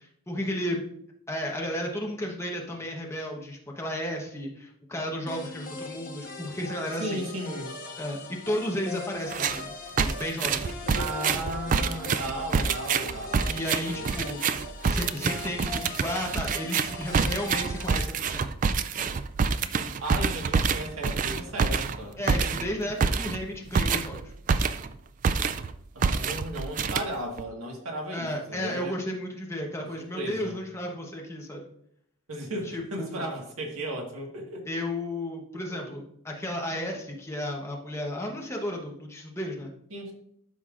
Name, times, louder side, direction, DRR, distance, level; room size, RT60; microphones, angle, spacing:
voice 1, 0.3-0.9 1.3-7.2 8.0-9.6 10.0-10.8 13.4-14.4 14.9-18.5 19.0-19.1 22.2-24.3 28.1-31.6 32.7-33.2 34.7-39.7, left 1 dB, 15° left, 0 dB, 1.1 m, -33 dB
sound 1, 5.3-18.1, left 2 dB, 40° left, 1.2 m, -40 dB
voice 2, 7.0-7.7 10.9-13.6 13.9-14.2 19.7-22.5 25.9-29.0 30.0-30.6 32.3-34.7 35.7-36.0 39.9-40.1, right 1 dB, 80° right, 1 dB, 1.7 m, -35 dB
sound 2, 9.3-9.6 10.0-25.0 25.2-25.7 26.0-27.4, right 5 dB, 40° right, 0.3 m, -27 dB
12.5 x 5.5 x 2.5 m, 0.71 s
head